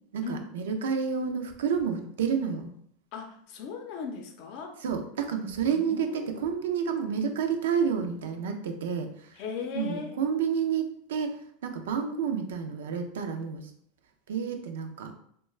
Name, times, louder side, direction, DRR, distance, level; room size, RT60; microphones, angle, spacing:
voice 1, 0.1-2.7 4.8-9.1 9.7-11.4 11.6-13.7 14.3-15.1, right 7 dB, 85° right, 5 dB, 0.4 m, -29 dB
voice 2, 3.1-4.8 5.7-6.5 9.3-10.2, left 5 dB, 60° left, 4 dB, 0.5 m, -38 dB
2.3 x 2.2 x 3.1 m, 0.66 s
supercardioid pair, 115°, 0 cm